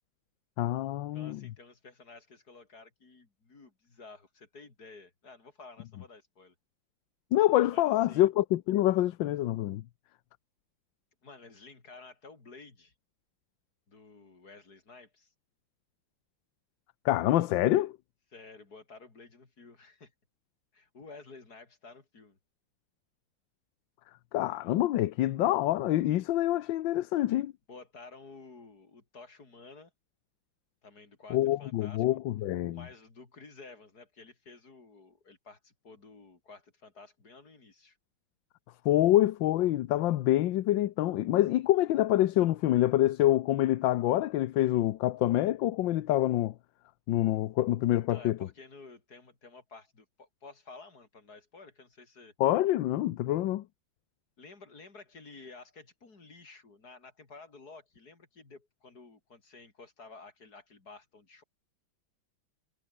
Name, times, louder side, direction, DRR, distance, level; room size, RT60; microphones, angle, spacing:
voice 1, 0.6-1.4 7.3-9.8 17.0-17.9 24.3-27.5 31.3-32.8 38.8-46.5 47.1-48.4 52.4-53.6, left 14 dB, 75° left, 1.4 m, -26 dB
voice 2, 1.1-6.5 7.7-8.3 11.2-12.9 13.9-15.3 18.3-20.1 20.7-22.4 27.7-29.9 30.8-32.2 32.7-38.0 47.9-52.3 54.4-61.4, left 3 dB, 50° left, 4.3 m, -52 dB
omnidirectional pair, 2.1 m